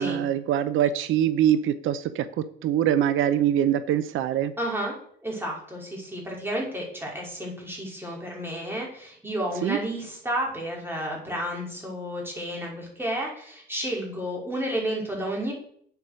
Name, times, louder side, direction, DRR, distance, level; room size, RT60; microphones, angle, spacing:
voice 1, 0.0-4.5 9.6-9.8, right 10 dB, 85° right, 13 dB, 0.8 m, -24 dB
voice 2, 4.6-4.9 5.2-15.5, right 1 dB, 10° right, -2 dB, 5.5 m, -31 dB
8.6 x 8.0 x 6.9 m, 0.64 s
cardioid pair, 90°, 20 cm